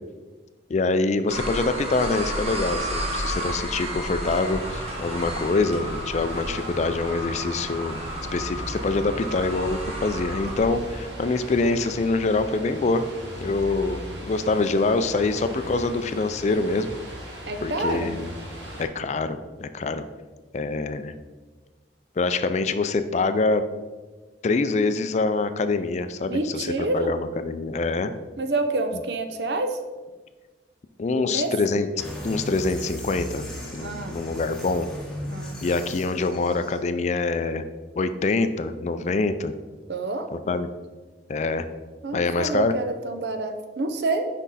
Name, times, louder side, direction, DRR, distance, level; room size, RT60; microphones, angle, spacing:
voice 1, 0.7-8.0 8.3-13.0 13.4-16.9 17.6-18.3 18.8-20.0 20.5-21.1 22.2-23.6 24.4-28.1 31.0-31.9 32.2-33.5 33.7-34.9 35.6-37.7 38.0-39.5 40.3-40.7 41.3-41.6 42.1-42.7, left 3 dB, 40° left, 10 dB, 0.4 m, -25 dB
sound 1, 1.3-10.7, equal, 35° right, 1.4 m, -32 dB
sound 2, 4.3-18.8, equal, 90° right, 2.0 m, -38 dB
voice 2, 17.5-18.1 26.3-27.1 28.4-29.8 31.2-31.5 33.8-34.2 35.2-35.6 39.9-40.3 42.0-44.2, right 2 dB, 70° right, 7 dB, 0.7 m, -27 dB
sound 3, 32.0-36.8, equal, 5° left, 1.3 m, -37 dB
6.1 x 5.4 x 4.1 m, 1.3 s
head